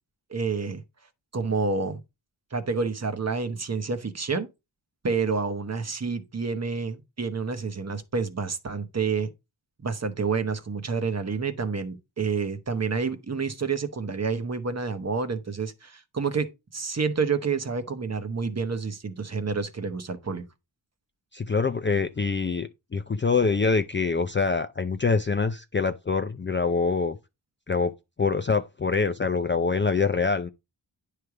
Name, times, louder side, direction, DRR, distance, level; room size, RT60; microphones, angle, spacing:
voice 1, 0.3-0.8 1.3-2.0 2.5-4.5 5.0-9.3 9.8-20.4, right 5 dB, 35° right, 1.0 m, -29 dB
voice 2, 21.3-27.2 27.7-27.9 28.2-30.5, left 4 dB, 25° left, 0.5 m, -25 dB
9.3 x 3.4 x 4.7 m
cardioid pair, 75°, 46 cm